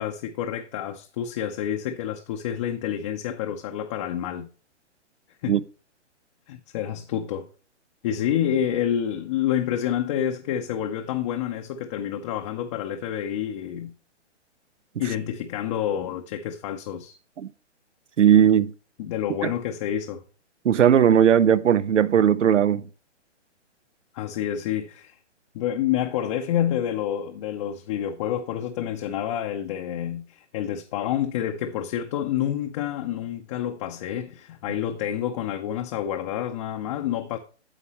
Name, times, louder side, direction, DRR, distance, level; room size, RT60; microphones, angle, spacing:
voice 1, 0.0-4.5 5.4-5.6 6.5-7.5 8.0-13.9 15.0-17.1 19.0-20.2 24.1-25.2 25.5-37.4, left 10 dB, 25° left, 0.6 m, -28 dB
voice 2, 18.2-18.7 19.4-19.5 20.6-22.8, right 9 dB, 90° right, 0.7 m, -18 dB
9.9 x 7.2 x 3.0 m
hypercardioid pair, 145°, 36 cm